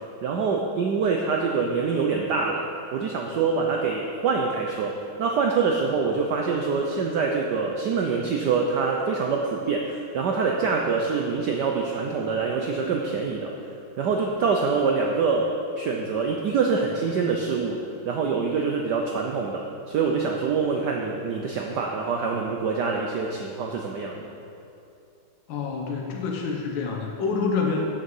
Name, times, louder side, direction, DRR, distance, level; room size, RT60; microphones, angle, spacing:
voice 1, 0.2-2.6 2.9-13.5 14.0-15.5 15.8-24.2, right 5 dB, 65° right, 1 dB, 1.2 m, -25 dB
voice 2, 25.5-27.9, left 4 dB, 65° left, 0 dB, 1.7 m, -27 dB
9.3 x 6.4 x 7.1 m, 2.7 s
omnidirectional pair, 2.3 m